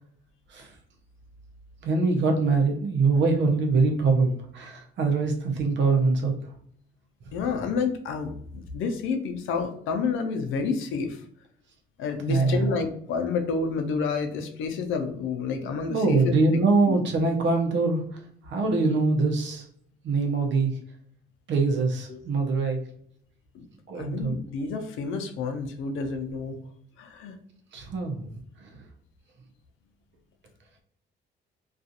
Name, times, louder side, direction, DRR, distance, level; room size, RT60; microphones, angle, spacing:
voice 1, 1.8-6.3 12.2-12.7 15.9-18.0 18.5-19.6 20.0-20.7 21.5-22.8 23.9-24.3 27.7-28.2, right 3 dB, 70° right, 3 dB, 0.7 m, -23 dB
voice 2, 7.3-11.2 12.0-16.3 16.9-17.0 22.1-22.2 23.5-23.7 24.0-26.6 27.0-27.4, left 5 dB, 80° left, 6 dB, 0.5 m, -29 dB
2.4 x 2.4 x 2.7 m, 0.62 s
cardioid pair, 90°, 20 cm